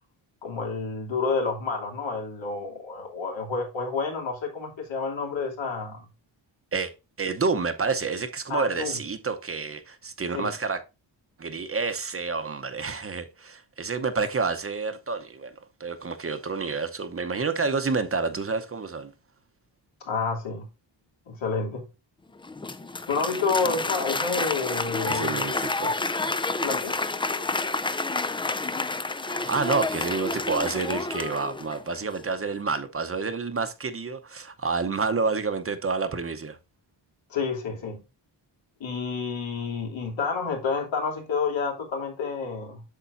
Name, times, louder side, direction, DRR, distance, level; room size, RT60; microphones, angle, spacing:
voice 1, 0.4-6.1 8.5-9.0 10.3-10.5 20.0-20.7 21.3-21.8 23.1-25.4 26.6-27.0 37.3-38.0 38.8-42.8, left 4 dB, 85° left, 3.0 m, -29 dB
voice 2, 7.2-10.8 11.4-15.5 15.8-19.1 25.1-25.9 29.3-36.6, right 4 dB, 30° right, 0.8 m, -29 dB
Applause, 22.4-32.0, left 3 dB, 15° left, 0.3 m, -29 dB
8.3 x 6.7 x 2.6 m
wide cardioid pair, 150°, 45 cm